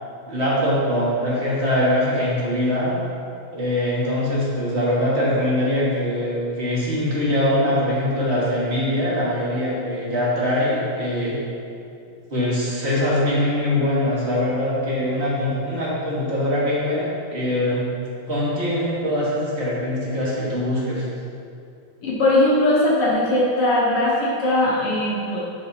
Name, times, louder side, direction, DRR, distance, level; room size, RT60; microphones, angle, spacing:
voice 1, 0.3-3.0 3.5-11.4 12.3-17.9 18.3-21.0, left 1 dB, 35° right, -7 dB, 1.0 m, -22 dB
voice 2, 22.0-25.4, left 1 dB, 70° left, -5 dB, 1.4 m, -19 dB
11.5 x 4.8 x 2.8 m, 2.5 s
omnidirectional pair, 3.5 m